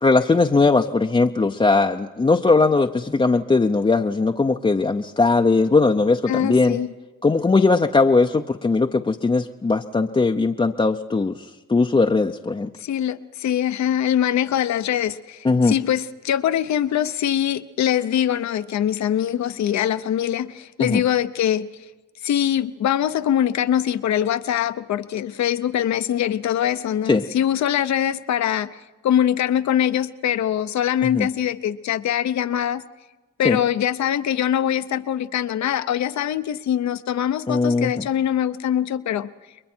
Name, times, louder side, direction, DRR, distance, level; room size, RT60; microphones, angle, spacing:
voice 1, 0.0-6.8 7.2-12.7 15.4-15.8 20.8-21.0 27.1-27.2 31.0-31.3 33.4-33.6 37.5-38.0, left 3 dB, 20° left, 3 dB, 0.6 m, -19 dB
voice 2, 6.3-6.9 12.8-21.7 22.2-32.8 33.4-39.3, left 10 dB, 65° left, 12 dB, 0.9 m, -23 dB
30.0 x 22.0 x 4.5 m, 1.2 s
cardioid pair, 90°, 30 cm